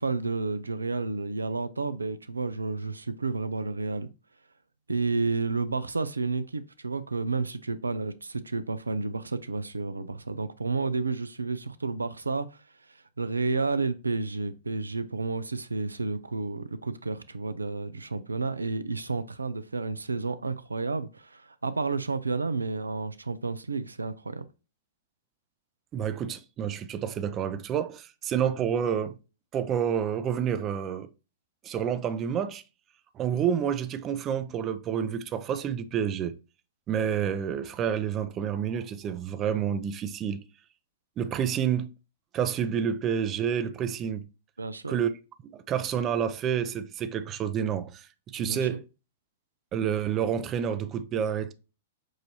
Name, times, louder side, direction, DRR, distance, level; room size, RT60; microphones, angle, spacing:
voice 1, 0.0-4.1 4.9-12.6 12.9-24.4 44.6-45.0 48.4-48.7, right 3 dB, 85° right, 0.4 m, -31 dB
voice 2, 25.9-29.1 29.5-31.1 31.6-32.6 33.2-36.3 36.9-40.4 41.2-41.9 42.3-44.2 44.9-45.1 45.5-48.1 48.3-48.8 49.7-51.5, right 8 dB, 30° right, 0.5 m, -29 dB
6.2 x 2.6 x 2.8 m
figure-of-eight pair, 105°, 0 cm